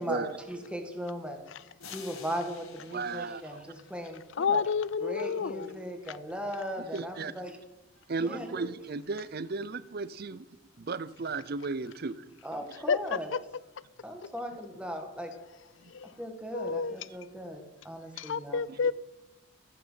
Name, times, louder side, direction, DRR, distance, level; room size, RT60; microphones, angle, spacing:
voice 1, 0.0-1.4 1.9-4.6 5.0-7.6 8.2-8.6 12.4-13.3 14.0-15.3 16.2-18.6, equal, 5° right, 1.7 m, -38 dB
sound 1, 1.8-4.5, left 6 dB, 85° left, 2.2 m, -50 dB
voice 2, 2.9-3.7 6.8-7.3 8.1-10.5 10.8-12.2, right 3 dB, 45° right, 0.5 m, -35 dB
voice 3, 4.3-5.8 12.7-13.6 14.2-14.3 15.9-16.1 16.5-17.0 18.2-18.9, left 5 dB, 60° left, 0.4 m, -30 dB
13.5 x 12.0 x 5.7 m
head